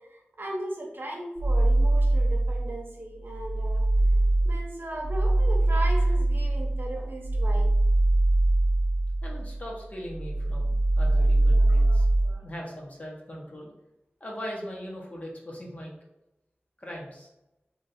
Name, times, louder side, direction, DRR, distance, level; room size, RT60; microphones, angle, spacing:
voice 1, 0.1-7.7 11.2-11.3 11.5-12.0 12.2-12.4, right 1 dB, 60° right, 0 dB, 0.8 m, -38 dB
sound 1, 1.4-2.8 3.2-9.7 10.0-12.3, right 2 dB, 75° left, 0.7 m, -23 dB
voice 2, 9.2-12.1 12.4-13.7 14.2-15.9 16.8-17.3, equal, 35° left, -3 dB, 1.1 m, -40 dB
3.0 x 2.6 x 4.1 m, 0.93 s
wide cardioid pair, 65°, 4 cm